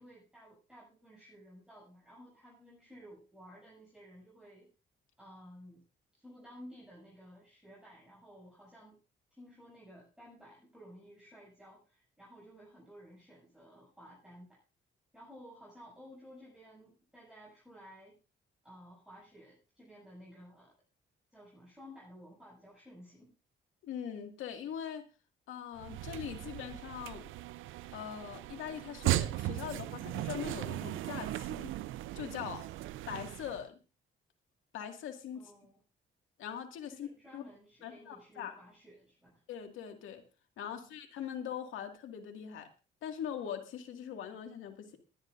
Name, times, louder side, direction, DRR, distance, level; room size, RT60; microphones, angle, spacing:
voice 1, 0.0-4.7 5.2-5.8 6.1-9.0 9.3-14.6 15.1-18.2 18.6-20.7 21.3-23.3 35.3-35.8 36.9-39.4 40.6-40.9, equal, 5° right, -6 dB, 7.3 m, -54 dB
voice 2, 23.8-25.0 25.5-27.2 27.9-31.7 32.2-32.7 33.1-33.8 34.7-35.5 36.4-37.1 37.3-37.4 37.8-38.5 39.5-40.2 40.6-42.7 43.0-45.0, left 9 dB, 85° left, 5 dB, 2.1 m, -41 dB
sound 1, 25.8-33.6, right 16 dB, 85° right, 0.5 m, -37 dB
20.5 x 10.5 x 2.6 m, 0.33 s
cardioid pair, 90°, 20 cm